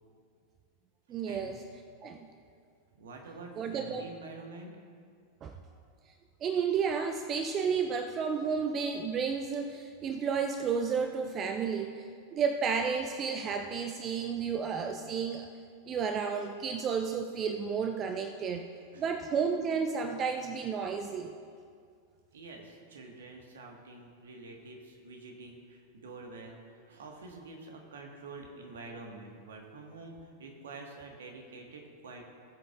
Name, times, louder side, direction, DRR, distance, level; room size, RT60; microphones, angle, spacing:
voice 1, 1.1-1.6 2.0-2.3 3.6-4.0 5.4-5.6 6.4-12.0 12.3-15.5 15.9-18.7 19.0-21.3, right 6 dB, 30° right, 6 dB, 0.5 m, -32 dB
voice 2, 2.9-4.7 18.9-19.1 22.3-32.2, right 3 dB, 65° right, 2 dB, 1.5 m, -47 dB
19.0 x 7.8 x 2.4 m, 2.2 s
figure-of-eight pair, 90°, 0 cm